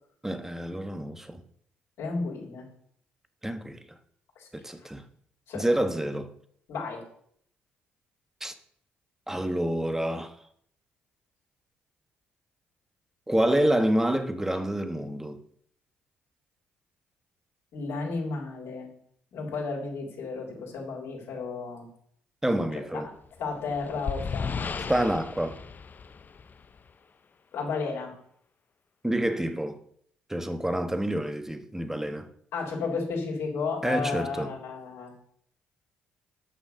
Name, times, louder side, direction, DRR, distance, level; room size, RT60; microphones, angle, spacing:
voice 1, 0.2-1.4 3.4-3.8 4.5-5.0 5.5-6.3 8.4-8.5 9.3-10.3 13.3-15.4 22.4-23.1 24.9-25.6 29.0-29.8 30.3-32.3 33.8-34.5, right 1 dB, 10° right, 1.4 m, -28 dB
voice 2, 2.0-2.7 4.4-4.5 4.8-4.9 5.5-5.6 6.7-7.0 17.7-18.9 19.3-21.9 23.4-25.1 27.5-28.1 32.5-35.1, left 4 dB, 70° left, 3.8 m, -33 dB
sound 1, 23.2-26.9, left 5 dB, 40° left, 0.8 m, -35 dB
9.9 x 6.1 x 6.4 m
hypercardioid pair, 50°, 5 cm